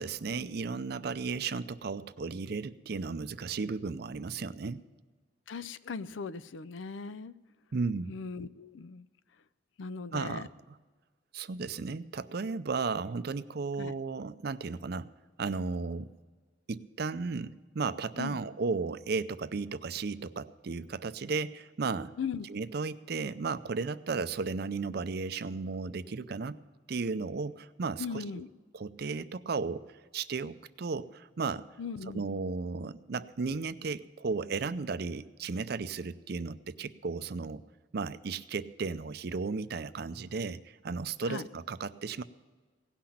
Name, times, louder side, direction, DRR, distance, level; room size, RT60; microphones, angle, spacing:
voice 1, 0.0-4.8 7.7-8.2 10.1-10.8 11.3-15.1 15.4-16.1 16.7-22.1 22.5-26.6 26.9-28.4 28.7-29.8 30.1-31.7 32.1-37.6 37.9-42.2, right 4 dB, 55° right, 14 dB, 0.5 m, -34 dB
voice 2, 5.5-7.3 8.1-9.1 9.8-10.5 13.8-13.9 18.2-18.4 22.2-22.5 28.0-28.5 31.8-32.4 41.3-41.5, left 5 dB, 85° left, 16 dB, 0.5 m, -38 dB
17.5 x 5.8 x 8.6 m, 1.4 s
head